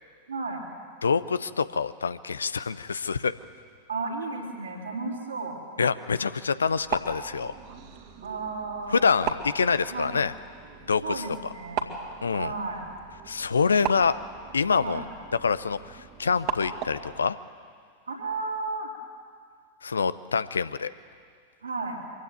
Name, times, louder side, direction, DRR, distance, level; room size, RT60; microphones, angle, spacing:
voice 1, 0.3-0.6 3.9-5.6 8.2-9.0 9.9-10.1 11.0-12.0 12.3-12.9 14.8-15.0 18.1-19.0 21.6-22.0, right 3 dB, 75° right, -1 dB, 4.2 m, -33 dB
voice 2, 1.0-3.3 5.8-7.5 8.9-10.3 10.9-11.1 12.2-12.5 13.3-14.2 14.5-15.0 15.4-17.4 19.8-20.9, left 5 dB, 75° left, 15 dB, 0.7 m, -26 dB
sound 1, 6.6-17.2, right 6 dB, 45° right, 2.3 m, -37 dB
24.0 x 16.0 x 9.3 m, 2.1 s
figure-of-eight pair, 90°, 0 cm